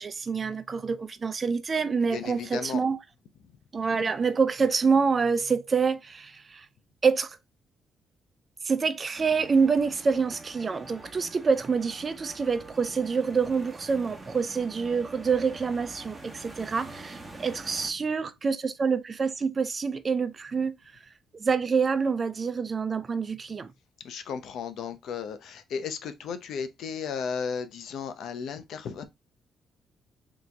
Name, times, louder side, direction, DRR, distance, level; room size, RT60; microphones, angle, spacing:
voice 1, 0.0-3.0 3.7-6.7 7.0-7.4 8.6-20.8 21.3-23.7, right 5 dB, 35° right, 0.5 m, -26 dB
voice 2, 2.1-2.8 24.0-29.0, left 6 dB, 75° left, 0.7 m, -34 dB
sound 1, 9.1-17.9, right 2 dB, 15° right, 1.1 m, -45 dB
3.7 x 3.0 x 3.3 m
cardioid pair, 90°, 0 cm